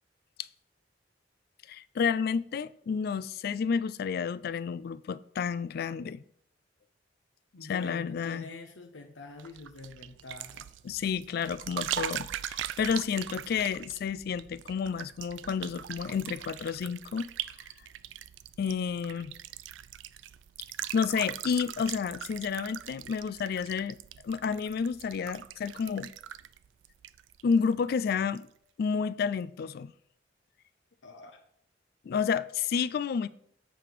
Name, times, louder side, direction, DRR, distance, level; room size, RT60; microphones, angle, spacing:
voice 1, 1.7-6.2 7.7-8.4 10.8-17.3 18.6-19.3 20.9-24.0 24.2-26.1 27.4-28.5 28.8-29.9 32.1-33.3, left 6 dB, 55° left, 0.3 m, -30 dB
voice 2, 7.5-10.7 31.0-31.4, left 3 dB, 80° left, 0.8 m, -45 dB
sound 1, 9.4-27.7 28.0-28.4, right 11 dB, 80° right, 0.3 m, -41 dB
7.6 x 4.9 x 5.0 m
head